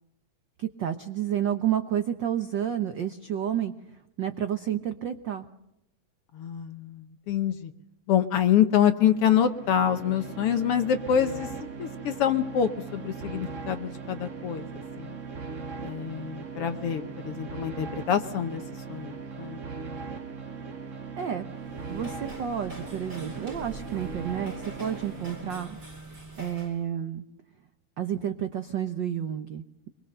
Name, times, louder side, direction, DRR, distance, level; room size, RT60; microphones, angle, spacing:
voice 1, 0.6-3.7 4.2-5.5 21.2-21.4 21.9-25.8 26.4-27.2 28.0-29.9, right 9 dB, 70° right, 8 dB, 1.0 m, -30 dB
voice 2, 6.3-7.7 8.1-11.5 11.8-15.2 15.8-18.6 18.9-19.6, left 9 dB, 65° left, 9 dB, 1.6 m, -26 dB
sound 1, 9.0-25.8, right 5 dB, 40° right, 1.1 m, -39 dB
sound 2, 21.5-26.8, equal, 25° right, 3.7 m, -44 dB
24.5 x 22.0 x 6.7 m, 0.86 s
omnidirectional pair, 3.3 m